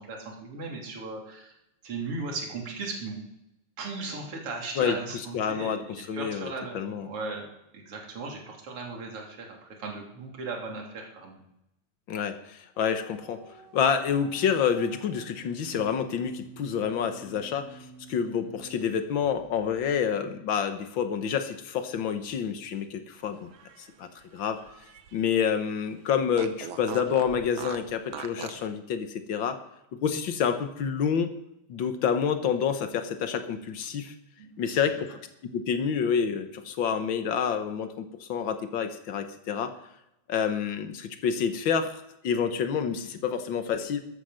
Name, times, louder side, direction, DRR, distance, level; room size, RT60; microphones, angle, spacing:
voice 1, 0.0-1.5 1.8-3.2 3.8-7.5 7.7-11.4 34.4-35.2, right 3 dB, 45° right, 0 dB, 3.8 m, -37 dB
voice 2, 4.8-7.1 12.1-13.4 13.7-23.5 23.8-24.6 25.1-29.6 30.0-31.3 31.7-34.1 34.6-35.2 35.5-39.7 40.3-44.0, left 7 dB, 65° left, 7 dB, 1.2 m, -28 dB
sound 1, 12.7-20.1, right 4 dB, 15° right, 2.5 m, -50 dB
Fart, 23.4-25.4 25.7-25.8 26.3-28.7, right 8 dB, 90° right, 1.1 m, -41 dB
13.5 x 10.0 x 6.5 m, 0.82 s
omnidirectional pair, 3.7 m